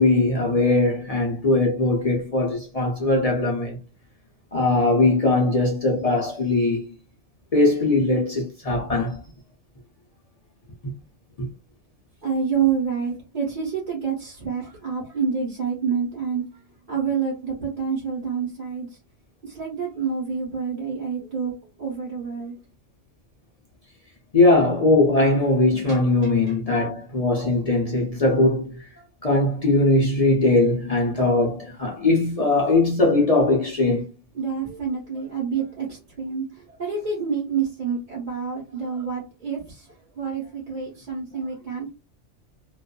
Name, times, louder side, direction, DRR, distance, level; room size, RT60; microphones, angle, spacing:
voice 1, 0.0-3.8 4.5-6.9 7.5-9.2 11.4-11.5 24.3-28.7 29.2-34.1, left 2 dB, 45° left, 0.5 m, -20 dB
voice 2, 12.2-16.6 16.9-18.9 19.4-21.5 21.8-22.6 25.9-26.0 26.2-26.6 34.3-39.9 40.2-41.9, right 6 dB, 40° right, 1.0 m, -28 dB
2.5 x 2.3 x 2.3 m
omnidirectional pair, 1.3 m